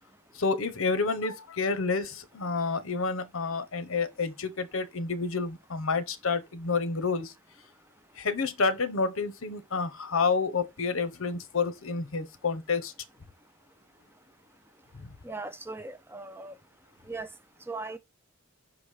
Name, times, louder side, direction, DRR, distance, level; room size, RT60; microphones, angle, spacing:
voice 1, 0.3-7.3 8.2-12.9 14.9-15.1, left 4 dB, 70° left, 0.9 m, -29 dB
voice 2, 15.2-16.5 17.1-17.3 17.7-18.0, right 3 dB, 10° right, 0.5 m, -38 dB
5.8 x 4.1 x 4.8 m
head